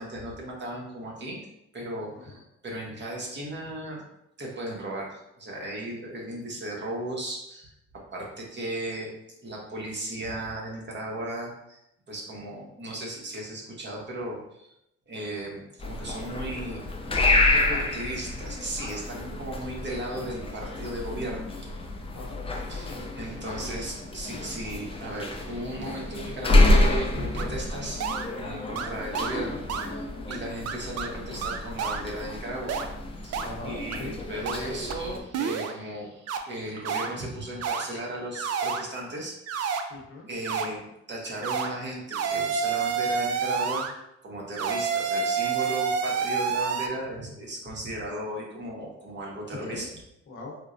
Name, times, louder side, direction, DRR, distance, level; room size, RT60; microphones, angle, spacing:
voice 1, 0.0-1.4 1.7-4.0 4.4-7.7 8.1-9.1 9.4-11.8 12.1-14.7 15.1-17.4 17.7-21.5 22.7-28.0 28.4-32.8 33.2-33.4 33.6-39.3 40.3-43.8 44.2-49.9, right 1 dB, 35° right, -2 dB, 0.9 m, -36 dB
sound 1, 15.8-35.2, left 2 dB, 20° left, 0.4 m, -28 dB
voice 2, 22.1-23.8 28.6-28.9 33.4-34.1 39.9-40.3 49.5-49.9 50.3-50.6, left 3 dB, 45° left, -2 dB, 0.9 m, -41 dB
sound 2, 27.4-27.5 28.0-28.3 28.8-28.9 29.1-29.3 29.7-29.9 30.3-30.4 30.7-31.1 31.4-32.0 32.7-32.8 33.3-33.5 33.9-34.0 34.5-34.6 34.9-35.0 35.3-35.7 36.3-36.4 36.8-37.1 37.6-37.8 38.4-38.8 39.5-39.8 40.4-40.7 41.4-41.7 42.1-43.9 44.6-46.9, right 6 dB, 55° right, 0.4 m, -28 dB
4.3 x 2.0 x 2.5 m, 0.82 s
cardioid pair, 90°, 30 cm